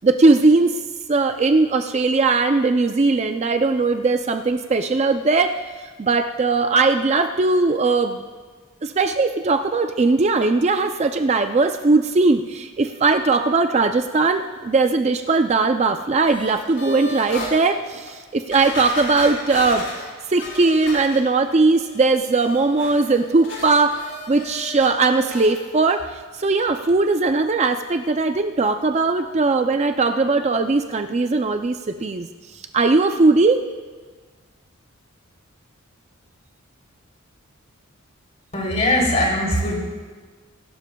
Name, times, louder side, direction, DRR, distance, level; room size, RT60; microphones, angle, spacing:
voice 1, 0.0-0.7 1.1-5.6 6.0-8.2 8.8-19.8 20.3-32.3 32.7-33.6, right 3 dB, 30° right, 7 dB, 0.4 m, -19 dB
sound 1, 16.3-17.5 18.1-18.2 18.5-21.5 21.8-24.9 25.2-25.5 25.9-26.0, left 2 dB, 60° left, 4.0 m, -35 dB
voice 2, 38.5-39.8, left 1 dB, 35° left, -3 dB, 3.1 m, -20 dB
24.0 x 12.0 x 2.3 m, 1.4 s
head